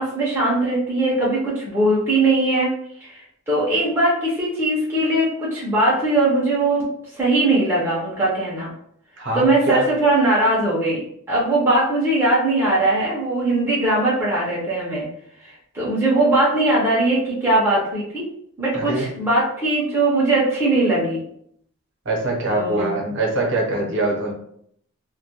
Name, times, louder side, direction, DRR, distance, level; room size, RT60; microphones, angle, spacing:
voice 1, 0.0-2.7 3.0-6.9 7.2-8.7 9.3-11.0 11.3-15.0 15.4-18.3 18.6-21.2 22.5-22.9, right 2 dB, 10° right, -7 dB, 0.5 m, -20 dB
voice 2, 9.2-9.8 18.7-19.1 22.1-24.3, right 2 dB, 55° right, -1 dB, 0.7 m, -23 dB
2.2 x 2.1 x 2.8 m, 0.70 s
head